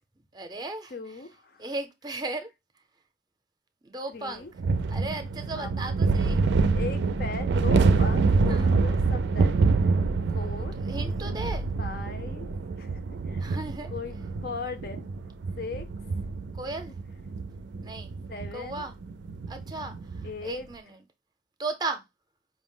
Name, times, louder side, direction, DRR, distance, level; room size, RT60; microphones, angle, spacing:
voice 1, 0.3-1.3 1.6-2.5 2.7-2.8 3.8-4.5 4.9-6.5 8.5-8.7 10.2-11.7 13.4-13.9 16.5-17.0 17.8-18.2 18.5-19.0 19.5-21.0 21.6-22.0, right 2 dB, 25° right, 0.5 m, -36 dB
voice 2, 0.9-1.6 4.1-4.5 5.6-5.8 6.7-9.6 10.3-10.8 11.8-12.5 12.8-12.9 13.3-13.5 13.9-15.0 15.6-15.9 18.3-18.8 20.2-20.7, left 4 dB, 60° left, 0.6 m, -38 dB
sound 1, 4.6-20.4, right 4 dB, 80° right, 0.4 m, -26 dB
5.1 x 2.0 x 3.6 m
head